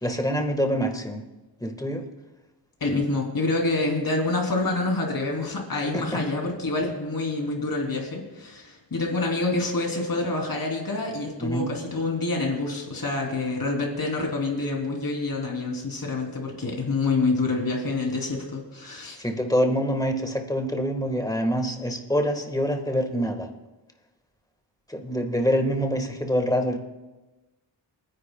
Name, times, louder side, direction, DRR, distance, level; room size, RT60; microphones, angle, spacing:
voice 1, 0.0-1.2 1.6-2.0 5.9-6.2 11.4-11.7 19.2-23.5 24.9-26.8, equal, 10° left, 4 dB, 1.5 m, -25 dB
voice 2, 2.8-19.2, left 3 dB, 50° left, 0 dB, 3.1 m, -27 dB
29.5 x 10.0 x 2.3 m, 1.1 s
wide cardioid pair, 105°, 45 cm